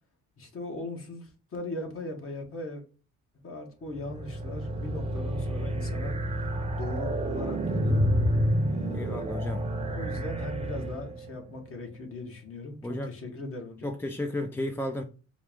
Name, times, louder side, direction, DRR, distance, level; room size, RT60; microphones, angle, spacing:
voice 1, 0.4-2.8 3.4-6.2 6.7-8.1 8.7-9.3 9.7-13.9, left 2 dB, 45° left, 1.3 m, -39 dB
sound 1, 3.9-11.3, equal, 20° right, 0.8 m, -29 dB
voice 2, 8.9-9.6 12.8-13.1 13.8-15.0, left 1 dB, 5° left, 0.4 m, -33 dB
4.5 x 2.3 x 3.6 m
cardioid pair, 90°, 30 cm